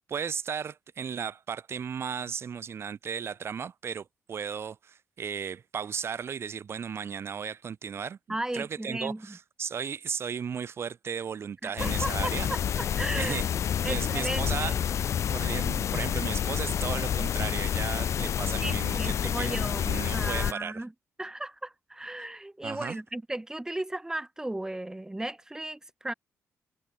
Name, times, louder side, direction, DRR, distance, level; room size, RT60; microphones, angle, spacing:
voice 1, 0.1-12.5 13.1-13.5 13.8-14.8 15.3-20.8 22.6-23.0, right 7 dB, 50° right, 1.6 m, -35 dB
voice 2, 8.3-9.4 11.6-13.4 13.8-14.8 18.6-19.9 20.1-20.9 21.2-26.1, right 1 dB, 10° right, 3.5 m, -35 dB
sound 1, 11.8-20.5, left 9 dB, 60° left, 1.3 m, -29 dB
cardioid pair, 100°, 6 cm